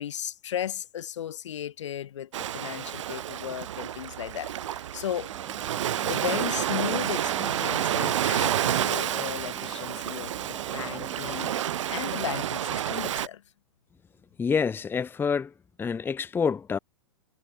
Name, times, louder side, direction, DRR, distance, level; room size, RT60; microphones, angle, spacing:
voice 1, 0.0-5.3 5.9-11.6 11.9-13.4, left 10 dB, 75° left, 1.7 m, -35 dB
Ocean, 2.3-13.3, right 11 dB, 80° right, 0.4 m, -29 dB
sound 1, 5.3-12.5, right 8 dB, 25° right, 2.1 m, -44 dB
voice 2, 14.4-15.5 15.8-16.8, left 6 dB, 15° left, 0.8 m, -27 dB
hypercardioid pair, 110°, 16 cm